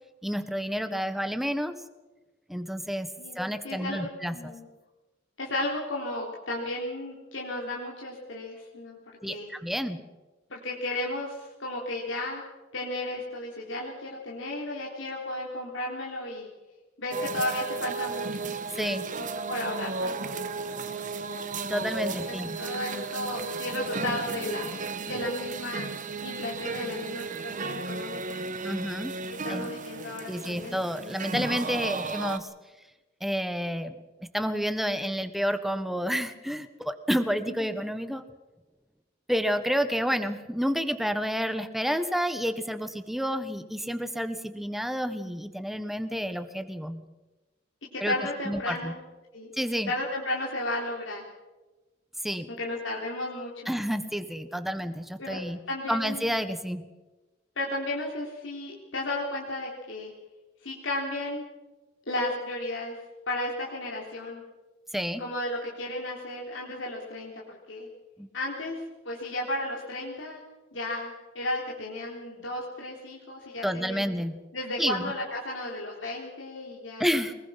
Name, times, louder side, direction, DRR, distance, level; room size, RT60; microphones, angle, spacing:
voice 1, 0.2-1.8 2.5-3.1 3.3-4.5 9.2-10.0 18.8-19.1 21.6-22.5 28.6-29.1 29.5-29.7 30.3-32.5 33.2-34.0 34.2-38.2 39.3-47.0 48.0-48.1 48.4-48.9 49.5-49.9 52.2-52.5 53.7-55.6 55.9-56.8 64.9-65.2 68.2-68.3 73.6-74.4 74.8-75.1 77.0-77.3, equal, ahead, 10 dB, 1.4 m, -30 dB
voice 2, 3.6-4.7 5.4-9.0 9.3-9.5 10.5-12.4 12.7-16.5 17.0-18.5 19.2-20.5 22.3-25.9 26.2-28.4 29.4-30.8 37.5-37.8 47.9-49.0 49.3-49.5 49.9-51.2 52.5-53.7 55.2-55.4 55.7-56.2 57.6-60.1 60.6-61.4 62.1-63.0 63.3-64.4 65.2-67.9 68.3-70.4 70.7-74.1 74.5-77.1, left 1 dB, 70° left, -3 dB, 3.8 m, -34 dB
sound 1, 17.1-32.4, right 4 dB, 40° right, 1.3 m, -34 dB
23.5 x 21.0 x 5.9 m, 1.1 s
head